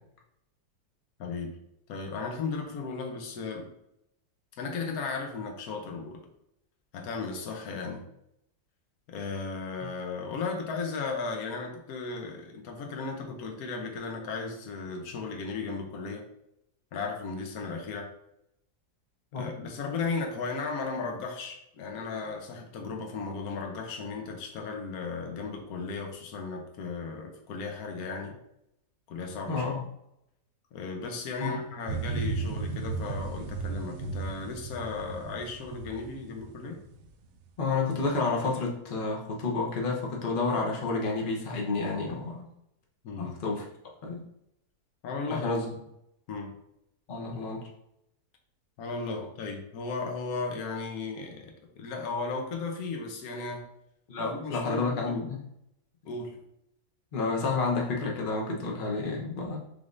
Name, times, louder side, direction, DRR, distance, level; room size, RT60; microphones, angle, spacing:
voice 1, 1.2-1.6 1.9-3.7 4.6-6.2 6.9-8.0 9.1-16.2 16.9-18.1 19.3-28.4 29.1-29.6 30.7-36.8 43.0-43.4 45.0-45.4 46.3-46.5 48.8-53.7 54.2-55.1 56.0-56.4, left 4 dB, 70° left, 2 dB, 1.2 m, -35 dB
voice 2, 29.5-29.8 31.4-31.6 37.6-42.5 43.2-43.7 44.0-44.2 45.3-45.7 47.1-47.7 54.1-55.4 57.1-59.6, left 3 dB, 40° left, -2 dB, 0.9 m, -30 dB
sound 1, 31.9-37.5 37.9-38.0, right 4 dB, 80° right, 1.1 m, -35 dB
5.2 x 3.3 x 2.5 m, 0.79 s
omnidirectional pair, 1.7 m